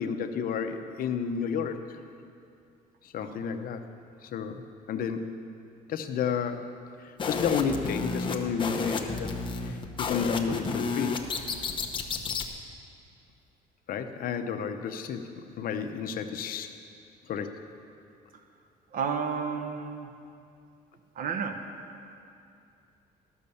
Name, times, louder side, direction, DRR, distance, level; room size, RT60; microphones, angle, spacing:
voice 1, 0.0-2.0 3.0-3.8 4.2-4.6 4.9-5.4 5.9-6.7 7.0-9.3 9.6-11.2 13.9-15.3 15.6-16.8 17.3-17.6, left 6 dB, 60° left, 7 dB, 0.8 m, -31 dB
voice 2, 3.2-3.5 18.9-20.1 21.2-21.6, right 6 dB, 55° right, 6 dB, 1.0 m, -32 dB
sound 1, 7.2-12.5, left 4 dB, 30° left, 0.9 m, -32 dB
12.5 x 6.5 x 6.9 m, 2.5 s
cardioid pair, 110°, 17 cm